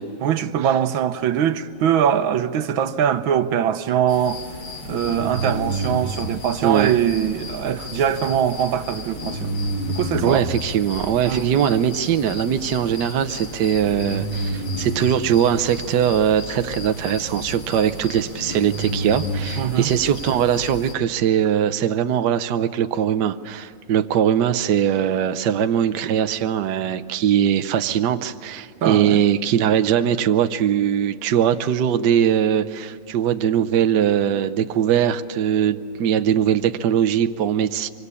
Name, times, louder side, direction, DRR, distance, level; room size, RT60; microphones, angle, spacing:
voice 1, 0.2-4.4 4.8-9.5 9.9-10.5 11.2-11.6 19.6-19.9 28.8-29.2, right 9 dB, 80° right, 1.7 m, -22 dB
sound 1, 4.1-20.9, equal, 80° left, 3.1 m, -31 dB
voice 2, 6.6-6.9 10.2-37.9, right 9 dB, 65° right, 1.3 m, -21 dB
25.5 x 25.0 x 8.4 m
omnidirectional pair, 2.2 m